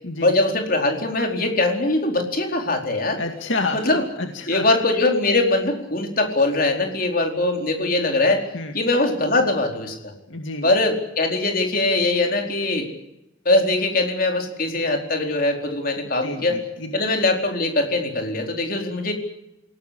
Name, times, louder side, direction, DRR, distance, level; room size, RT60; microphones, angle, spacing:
voice 1, 0.2-3.2 3.7-4.0 4.5-8.5 8.7-10.1 10.6-12.9 13.4-16.6 16.9-19.1, left 2 dB, 45° left, 3 dB, 4.5 m, -21 dB
voice 2, 3.2-4.6 8.5-8.7 10.3-10.7 16.2-16.9, left 3 dB, 70° left, 5 dB, 2.2 m, -29 dB
27.5 x 18.0 x 8.4 m, 0.89 s
head